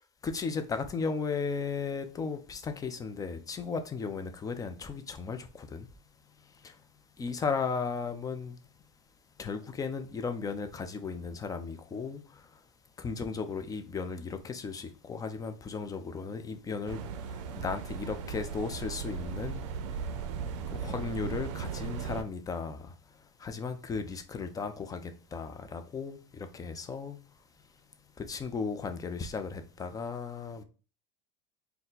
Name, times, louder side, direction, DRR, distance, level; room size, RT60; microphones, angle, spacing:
voice 1, 0.2-5.9 6.4-6.8 7.2-8.6 9.4-12.6 13.0-19.7 20.7-27.2 28.2-30.6, left 5 dB, 25° left, 0.6 m, -36 dB
sound 1, 16.9-22.2, right 6 dB, 75° right, 0.5 m, -37 dB
4.2 x 2.3 x 3.9 m
supercardioid pair, 105°, 16 cm